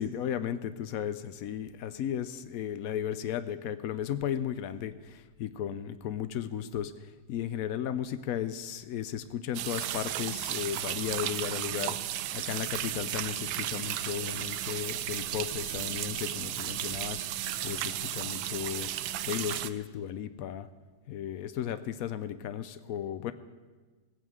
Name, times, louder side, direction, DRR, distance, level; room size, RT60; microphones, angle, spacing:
voice 1, 0.0-20.7 21.1-23.3, left 9 dB, 85° left, 12 dB, 0.7 m, -35 dB
sound 1, 9.5-19.7, right 12 dB, 80° right, 1.3 m, -34 dB
16.0 x 9.1 x 7.8 m, 1.4 s
omnidirectional pair, 2.1 m